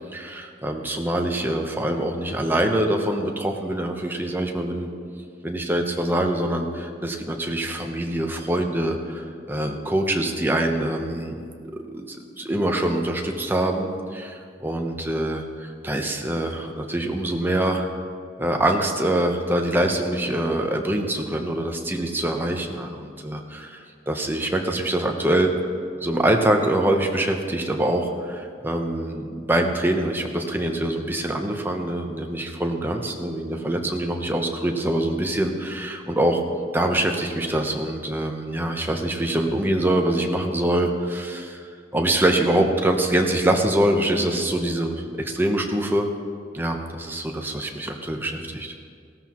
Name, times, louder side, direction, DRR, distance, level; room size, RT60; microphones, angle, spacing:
voice 1, 0.1-4.9 5.4-11.4 11.7-17.9 18.4-25.5 26.0-36.4 36.7-41.6 41.9-46.1 46.5-48.7, right 1 dB, 10° right, 3 dB, 0.9 m, -24 dB
16.5 x 13.0 x 3.1 m, 2.2 s
head